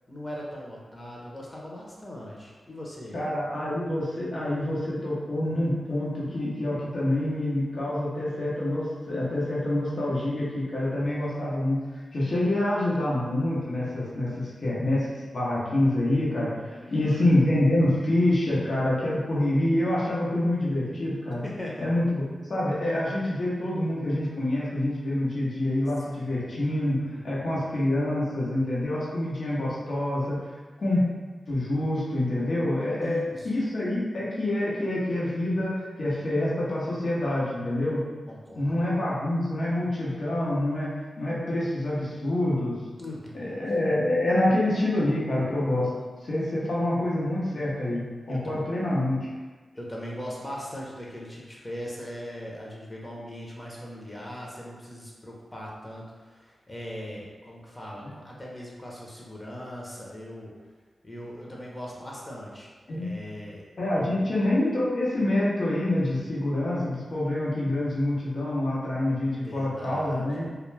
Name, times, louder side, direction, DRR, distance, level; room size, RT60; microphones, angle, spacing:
voice 1, 0.1-3.2 16.7-17.1 21.4-21.9 26.2-26.5 27.1-27.6 33.0-33.5 38.3-38.9 43.0-43.7 48.3-48.7 49.7-60.5 61.0-62.7 62.9-64.3 69.4-70.5, left 1 dB, 25° left, -3 dB, 0.7 m, -40 dB
voice 2, 3.1-11.8 12.1-16.5 16.9-21.4 21.8-30.4 30.8-31.0 31.5-35.7 36.0-38.0 38.6-40.9 41.2-42.8 43.3-45.9 46.2-48.0 48.3-49.3 58.0-58.1 62.9-63.1 63.8-70.5, left 1 dB, 65° left, -7 dB, 0.9 m, -26 dB
2.3 x 2.2 x 3.2 m, 1.3 s
cardioid pair, 45°, 0 cm